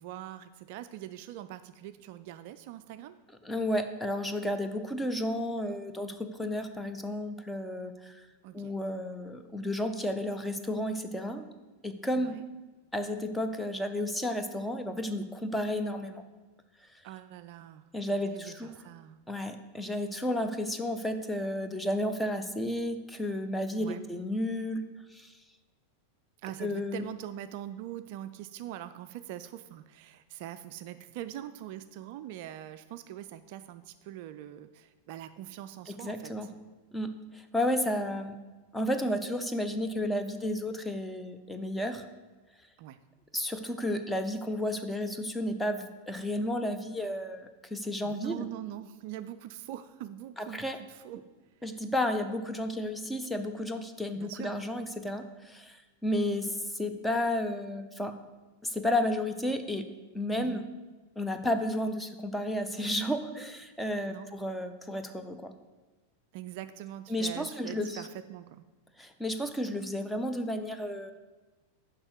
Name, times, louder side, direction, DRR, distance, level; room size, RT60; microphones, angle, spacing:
voice 1, 0.0-3.2 8.4-8.7 12.1-12.4 17.0-17.9 18.2-19.2 23.8-24.1 26.4-36.3 42.8-43.0 48.0-51.2 54.1-54.5 60.4-60.6 64.1-64.3 66.3-68.6, right 12 dB, 50° right, 11 dB, 0.3 m, -43 dB
voice 2, 3.4-8.2 8.5-11.5 11.8-12.4 12.9-16.2 17.9-18.8 19.3-24.8 25.1-25.3 26.6-27.0 35.9-36.5 36.9-38.3 38.7-42.0 43.3-48.5 50.4-50.8 51.6-58.1 58.6-59.9 60.1-60.6 61.2-65.5 67.1-68.0 69.0-71.1, left 1 dB, 5° left, 7 dB, 0.6 m, -32 dB
7.1 x 5.2 x 6.5 m, 1.2 s
figure-of-eight pair, 90°, 0 cm